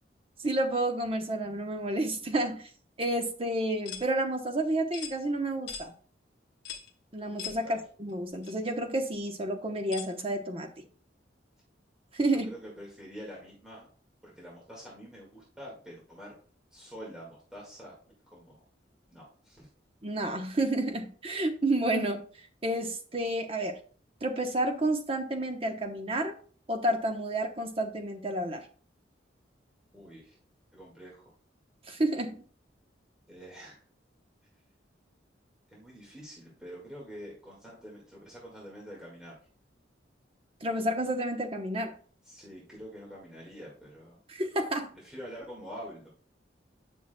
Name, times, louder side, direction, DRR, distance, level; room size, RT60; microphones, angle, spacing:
voice 1, 0.4-2.6 3.0-5.9 7.1-10.7 12.1-12.5 20.0-22.2 22.6-23.7 24.2-26.3 26.7-28.6 31.9-32.4 40.6-41.9 44.3-44.9, right 1 dB, 30° right, 4 dB, 1.0 m, -30 dB
sound 1, 3.9-4.1 4.9-5.2 5.7-5.9 6.7-6.9 7.4-7.6 8.4-8.5 9.9-10.1, left 7 dB, 80° left, 1.0 m, -39 dB
voice 2, 12.4-13.9 14.2-16.3 16.7-17.9 18.3-18.4 19.1-19.7 29.9-30.4 30.7-31.3 33.3-33.8 35.7-39.4 42.2-44.2 45.0-46.1, equal, 5° right, -4 dB, 1.9 m, -46 dB
9.6 x 5.9 x 2.3 m, 0.43 s
head